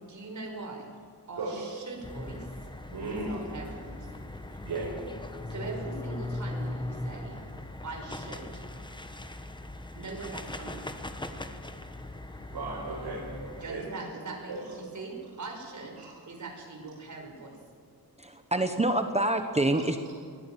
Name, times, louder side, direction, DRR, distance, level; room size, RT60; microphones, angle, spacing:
voice 1, 0.1-0.9 1.3-2.5 3.1-4.1 5.5-7.4 7.8-8.6 9.9-11.0 13.6-16.0 16.2-17.6, right 3 dB, 45° right, 1 dB, 5.3 m, -41 dB
sound 1, 2.0-13.7, left 1 dB, 10° left, 1.2 m, -39 dB
voice 2, 2.9-3.3 4.6-4.9 5.6-5.7 12.5-13.2 13.6-13.8 14.5-14.6 19.7-19.8, right 3 dB, 80° right, -5 dB, 6.0 m, -35 dB
voice 3, 18.2-20.1, right 1 dB, 15° right, 7 dB, 1.1 m, -27 dB
22.5 x 16.5 x 9.1 m, 2.2 s
wide cardioid pair, 170°, 39 cm